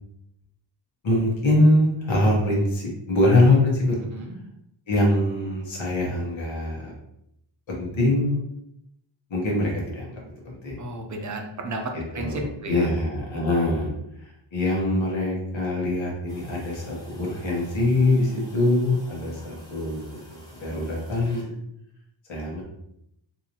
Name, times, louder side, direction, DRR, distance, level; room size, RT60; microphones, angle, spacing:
voice 1, 1.0-4.0 4.9-6.9 7.7-8.4 9.3-10.8 11.9-13.9 14.2-21.4 22.3-22.6, left 1 dB, 70° left, -2 dB, 1.2 m, -23 dB
voice 2, 10.8-12.9, right 2 dB, 40° right, 3 dB, 0.6 m, -33 dB
sound 1, 16.3-21.4, equal, 10° left, 1.0 m, -48 dB
4.0 x 2.7 x 2.9 m, 0.77 s
wide cardioid pair, 170°, 47 cm